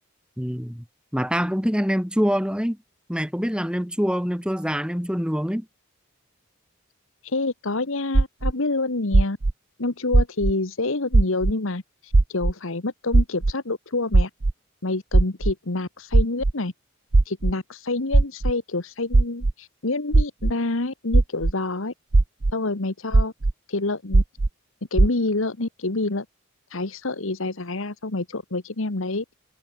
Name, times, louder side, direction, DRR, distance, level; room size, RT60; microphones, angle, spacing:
voice 1, 0.4-0.8 1.1-2.8 3.1-5.7, equal, 5° right, 5.4 m, -25 dB
voice 2, 7.2-9.4 9.8-14.3 14.8-16.7 17.3-21.9 22.5-23.3 23.7-24.2 24.9-26.2 26.7-29.2, left 2 dB, 70° left, 1.4 m, -27 dB
sound 1, 8.1-8.5 9.1-9.5 10.1-10.5 11.1-11.5 12.1-12.5 13.1-13.5 14.1-14.5 15.1-15.5 16.1-16.5 17.1-17.5 18.1-18.5 19.1-19.5 20.1-20.5 21.1-21.5 22.1-22.5 23.1-23.5 24.1-24.5 25.0-25.1, right 2 dB, 50° right, 0.7 m, -16 dB
head